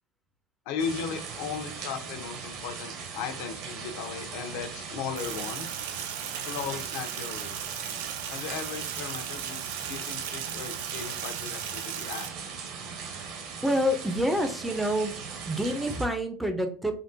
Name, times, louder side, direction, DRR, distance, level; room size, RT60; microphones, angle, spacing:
voice 1, 0.7-5.8 6.4-7.5 8.3-12.6, left 6 dB, 70° left, 5 dB, 0.6 m, -37 dB
sound 1, 0.8-16.1, right 6 dB, 50° right, 0.7 m, -40 dB
Sink (filling or washing), 5.2-12.3, right 9 dB, 90° right, 0.3 m, -37 dB
voice 2, 13.6-15.2 15.5-16.9, equal, 5° right, 6 dB, 0.4 m, -27 dB
3.6 x 2.2 x 2.5 m, 0.42 s
supercardioid pair, 150°, 0 cm